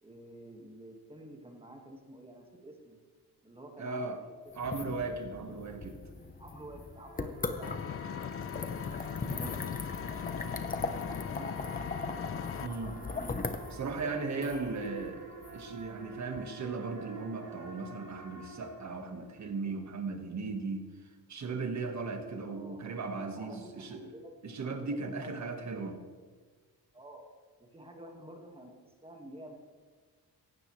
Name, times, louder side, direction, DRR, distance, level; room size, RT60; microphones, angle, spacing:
voice 1, 0.0-3.0 3.4-4.7 6.4-7.8 8.5-8.7 9.2-9.7 11.2-11.8 13.7-14.7 22.4-23.0 23.3-24.3 24.6-24.7 25.2-25.6 26.9-27.2 27.6-29.5, right 1 dB, 15° right, 1 dB, 1.8 m, -50 dB
voice 2, 3.8-4.2 4.5-6.0 12.6-13.0 13.7-15.3 15.5-24.0 24.4-26.0, right 4 dB, 45° right, 5 dB, 1.6 m, -37 dB
sound 1, 4.5-16.4, left 3 dB, 20° left, 0.8 m, -40 dB
sound 2, 6.6-19.4, right 3 dB, 75° right, 5.2 m, -50 dB
Engine, 7.6-12.7, left 8 dB, 35° left, 0.4 m, -39 dB
16.5 x 16.5 x 3.2 m, 1.5 s
wide cardioid pair, 175°, 39 cm